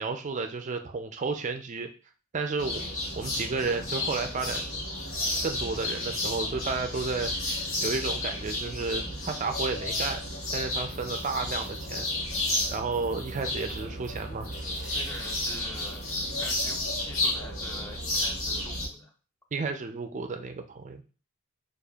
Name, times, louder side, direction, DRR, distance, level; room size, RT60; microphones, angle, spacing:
voice 1, 0.0-1.9 2.3-4.6 5.4-7.3 7.8-10.2 10.5-12.1 12.7-14.5 19.5-21.0, right 4 dB, 35° right, 6 dB, 0.4 m, -32 dB
sound 1, 2.6-18.9, left 1 dB, 75° left, 1.1 m, -32 dB
sound 2, 10.8-16.2, right 1 dB, 20° right, 1.3 m, -51 dB
voice 2, 14.9-16.0 16.4-19.1, left 1 dB, 10° left, 1 dB, 0.7 m, -45 dB
6.5 x 2.4 x 2.3 m, 0.36 s
head